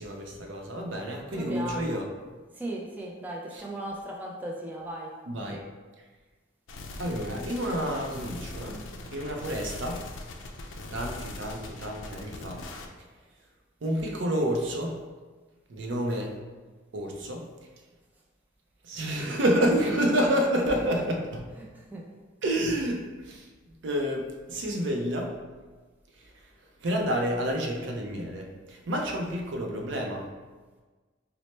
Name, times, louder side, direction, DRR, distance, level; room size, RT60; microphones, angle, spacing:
voice 1, 0.0-2.1 3.5-3.6 5.3-5.6 7.0-8.8 9.1-10.0 10.9-12.7 13.8-15.0 15.7-16.4 16.9-17.5 18.8-21.5 22.4-23.5 23.8-25.4 26.2-26.5 26.8-30.3, equal, 70° right, 1 dB, 0.5 m, -29 dB
voice 2, 1.3-2.1 2.5-5.1 19.6-20.0 20.7-20.9 21.5-22.1, right 1 dB, 10° right, -3 dB, 0.3 m, -37 dB
sound 1, 6.7-12.9, left 2 dB, 80° left, 0.4 m, -41 dB
4.1 x 2.0 x 3.1 m, 1.3 s
head